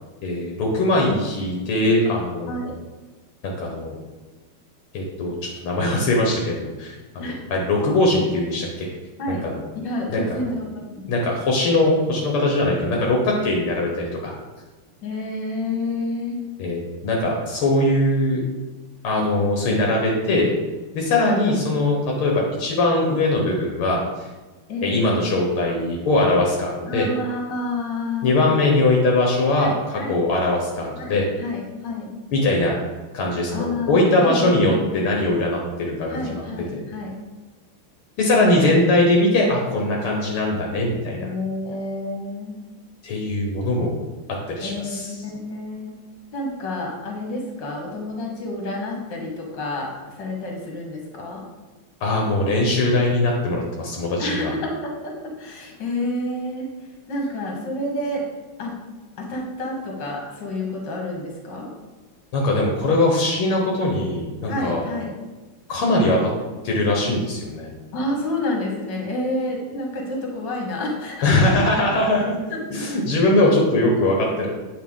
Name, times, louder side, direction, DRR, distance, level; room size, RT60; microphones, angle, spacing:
voice 1, 0.2-2.7 3.4-4.0 4.9-8.9 9.3-9.6 10.1-10.5 11.1-14.3 16.6-18.4 19.0-20.5 20.9-24.0 24.8-27.1 28.2-31.3 32.3-32.8 33.1-36.4 38.2-41.3 43.0-44.0 44.5-45.1 52.0-54.5 62.3-64.8 65.7-66.3 66.6-67.7 71.2-72.4 72.7-74.5, left 2 dB, 75° left, -1 dB, 1.9 m, -21 dB
voice 2, 9.8-11.1 13.8-13.9 15.0-16.4 21.2-21.6 24.7-25.0 26.9-28.7 29.6-30.2 31.0-32.1 33.5-35.0 36.1-37.1 38.4-38.7 41.1-42.6 44.6-45.9 46.3-51.4 54.2-56.7 57.1-58.2 58.6-58.7 59.2-61.7 64.5-65.1 67.9-71.5 72.5-72.7, left 2 dB, 55° left, 0 dB, 2.2 m, -29 dB
8.4 x 5.4 x 3.7 m, 1.2 s
omnidirectional pair, 2.4 m